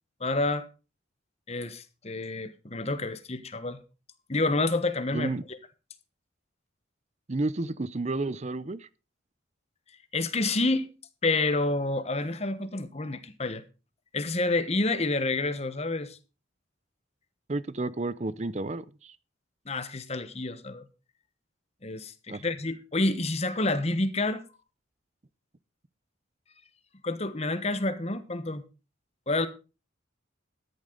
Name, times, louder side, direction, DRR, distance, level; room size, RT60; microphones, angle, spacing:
voice 1, 0.2-0.7 1.5-3.8 4.3-5.6 10.1-10.9 11.2-13.6 14.1-16.2 19.7-20.8 21.8-24.4 27.0-28.6 29.3-29.5, left 2 dB, 35° left, 1.2 m, -28 dB
voice 2, 5.1-5.4 7.3-8.9 17.5-19.1 22.3-22.4, right 2 dB, 35° right, 0.6 m, -31 dB
13.5 x 11.0 x 3.9 m
head